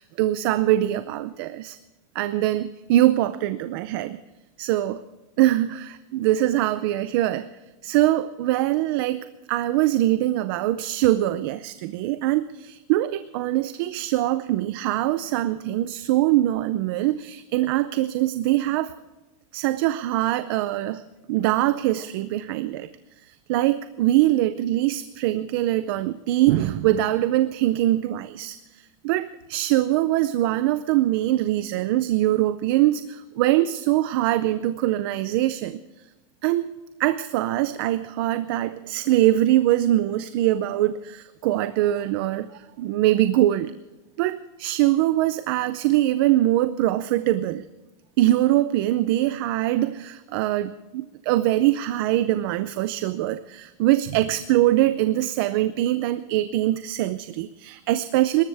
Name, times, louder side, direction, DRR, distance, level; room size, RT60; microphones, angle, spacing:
voice 1, 0.0-1.8 2.1-4.2 4.6-5.0 5.4-7.5 7.8-18.9 19.5-21.0 21.3-22.9 23.3-35.8 36.4-43.7 44.2-47.6 48.2-58.4, right 14 dB, 40° right, 13 dB, 0.6 m, -23 dB
25.5 x 14.0 x 3.4 m, 1.1 s
supercardioid pair, 175°, 18 cm